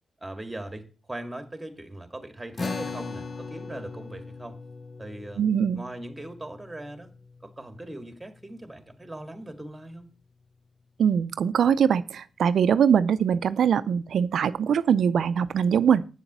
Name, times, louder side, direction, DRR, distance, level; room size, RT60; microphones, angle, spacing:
voice 1, 0.2-4.6 5.0-5.4 5.7-7.1 7.4-10.1, right 1 dB, 15° right, 2.0 m, -40 dB
sound 1, 2.6-9.2, left 4 dB, 40° left, 0.6 m, -39 dB
voice 2, 5.4-5.8 11.0-16.1, right 7 dB, 75° right, 0.5 m, -22 dB
8.2 x 7.2 x 6.8 m
cardioid pair, 80°, 0 cm